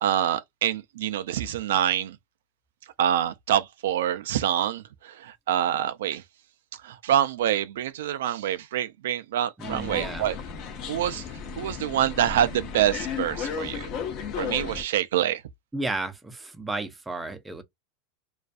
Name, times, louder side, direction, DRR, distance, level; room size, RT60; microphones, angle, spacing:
voice 1, 0.0-2.2 3.0-6.2 6.7-10.3 10.9-11.3 11.6-13.9 14.4-15.4, right 11 dB, 85° right, 0.3 m, -26 dB
sound 1, 9.6-14.8, left 6 dB, 45° left, 0.6 m, -34 dB
voice 2, 9.6-10.3 15.7-17.6, right 2 dB, 10° right, 0.4 m, -33 dB
2.4 x 2.2 x 2.4 m
supercardioid pair, 135°, 0 cm